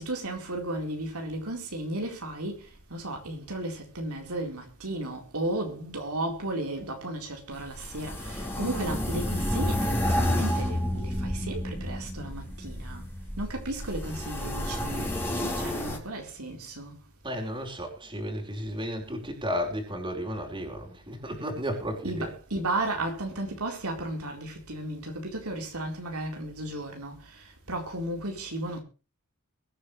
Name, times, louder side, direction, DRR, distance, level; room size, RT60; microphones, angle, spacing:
voice 1, 0.0-13.1 13.4-17.0 22.0-28.8, right 1 dB, 75° right, 4.2 m, -34 dB
sound 1, 7.5-16.0, left 1 dB, 10° left, 4.5 m, -30 dB
voice 2, 17.2-22.3, equal, 20° right, 4.8 m, -33 dB
22.5 x 10.0 x 3.3 m
head